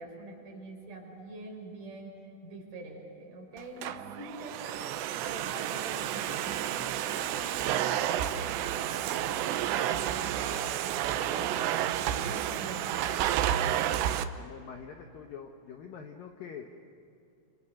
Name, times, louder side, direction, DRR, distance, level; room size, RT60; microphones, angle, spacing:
voice 1, 0.0-2.2 2.4-4.9 5.2-8.4 8.7-10.6 11.1-13.2, right 1 dB, 40° right, -1 dB, 7.0 m, -44 dB
Domestic sounds home sounds, 3.6-14.2, right 11 dB, 80° right, 2.7 m, -31 dB
voice 2, 13.8-16.9, left 7 dB, 70° left, 3 dB, 2.1 m, -45 dB
29.5 x 26.5 x 6.5 m, 2.7 s
omnidirectional pair, 5.7 m